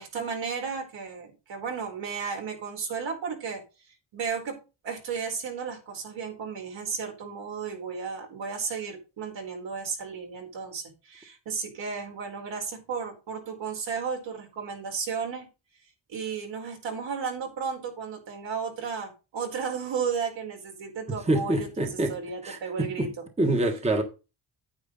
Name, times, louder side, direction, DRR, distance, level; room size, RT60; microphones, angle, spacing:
voice 1, 0.0-4.6 4.8-15.5 16.1-23.3, right 6 dB, 70° right, 4.7 m, -34 dB
voice 2, 21.3-22.1 22.4-23.1 23.4-24.0, right 1 dB, 15° right, 1.3 m, -26 dB
9.5 x 9.2 x 4.0 m
cardioid pair, 125°, 46 cm